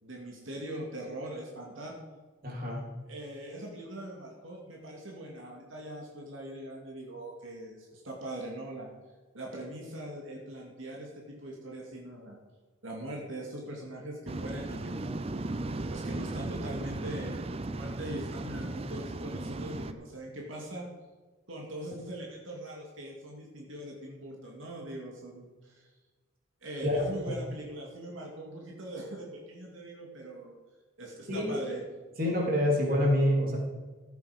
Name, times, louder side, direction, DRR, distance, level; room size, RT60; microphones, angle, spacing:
voice 1, 0.0-2.0 3.0-8.9 9.3-12.4 12.8-15.4 15.9-20.9 21.5-25.9 26.6-30.5 31.0-31.8, right 1 dB, 80° right, -2 dB, 2.3 m, -41 dB
voice 2, 2.4-2.8 26.8-27.1 31.3-31.5 32.2-33.6, left 1 dB, 45° right, -2 dB, 3.4 m, -26 dB
Waves surf, 14.3-19.9, right 2 dB, 30° right, 0.5 m, -36 dB
14.5 x 8.2 x 5.1 m, 1.3 s
head